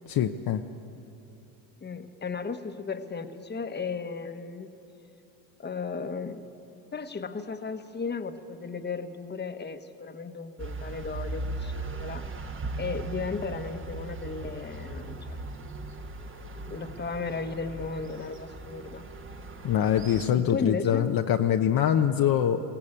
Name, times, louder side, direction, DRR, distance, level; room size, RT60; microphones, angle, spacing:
voice 1, 0.1-0.6 19.6-22.6, left 9 dB, 45° left, 4 dB, 0.9 m, -24 dB
voice 2, 1.8-4.7 5.6-6.4 6.9-12.2 12.8-15.4 16.7-19.1 20.3-21.1, left 5 dB, 20° left, 8 dB, 1.3 m, -35 dB
sound 1, 10.6-20.3, right 3 dB, 25° right, 1.3 m, -38 dB
22.0 x 16.5 x 8.7 m, 2.8 s
supercardioid pair, 90°, 49 cm